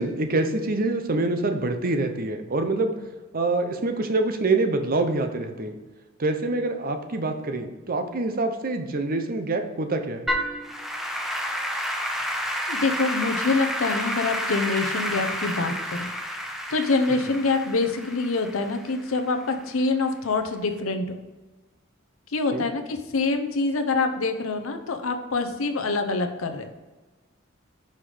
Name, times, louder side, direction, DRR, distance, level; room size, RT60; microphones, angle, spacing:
voice 1, 0.0-2.9 3.3-5.7 6.2-10.3 22.5-22.6, right 2 dB, 45° right, 6 dB, 0.7 m, -25 dB
Applause / Keyboard (musical), 10.3-19.6, equal, ahead, 0.7 m, -30 dB
voice 2, 12.7-16.1 16.7-21.2 22.3-26.7, left 3 dB, 80° left, 7 dB, 0.7 m, -25 dB
5.7 x 4.9 x 4.9 m, 1.2 s
head